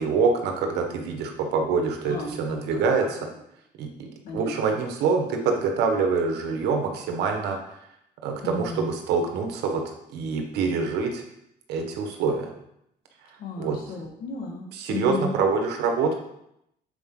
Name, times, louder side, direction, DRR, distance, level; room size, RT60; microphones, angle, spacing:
voice 1, 0.0-3.2 3.8-4.1 4.3-7.6 8.2-9.8 10.1-11.2 11.7-12.5 13.6-13.8 14.8-16.2, right 4 dB, 80° right, 4 dB, 1.2 m, -25 dB
voice 2, 2.0-3.1 4.2-4.8 8.4-8.9 13.4-15.3, left 2 dB, 65° left, 1 dB, 1.7 m, -35 dB
7.8 x 4.5 x 3.8 m, 0.79 s
cardioid pair, 110°, 17 cm